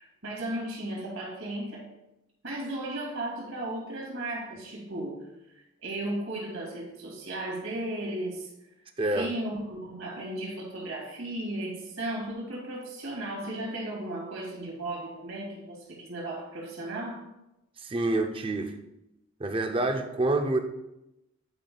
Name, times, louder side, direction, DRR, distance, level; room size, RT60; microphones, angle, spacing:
voice 1, 0.0-1.9 2.4-5.3 5.8-8.5 9.0-17.2, right 1 dB, 70° right, -3 dB, 2.5 m, -35 dB
voice 2, 9.0-9.3 17.8-18.8 19.4-20.6, right 2 dB, 25° right, 6 dB, 0.5 m, -27 dB
10.5 x 5.6 x 2.3 m, 0.91 s
head